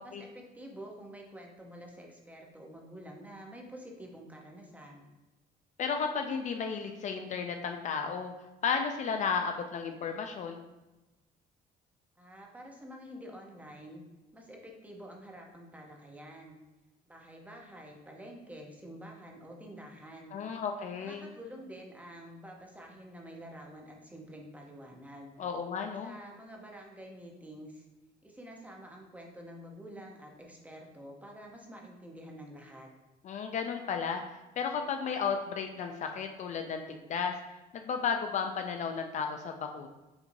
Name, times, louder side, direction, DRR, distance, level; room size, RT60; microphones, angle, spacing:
voice 1, 0.0-5.1 12.2-14.0 14.3-16.6 17.1-20.4 21.0-25.3 26.0-27.9 28.2-32.9, equal, 10° right, 0 dB, 0.7 m, -48 dB
voice 2, 5.8-8.3 8.6-10.6 20.3-21.2 25.4-26.1 33.2-34.2 34.6-37.4 37.7-39.9, left 6 dB, 45° left, 5 dB, 0.4 m, -33 dB
5.8 x 2.6 x 2.6 m, 1.1 s
cardioid pair, 110°, 17 cm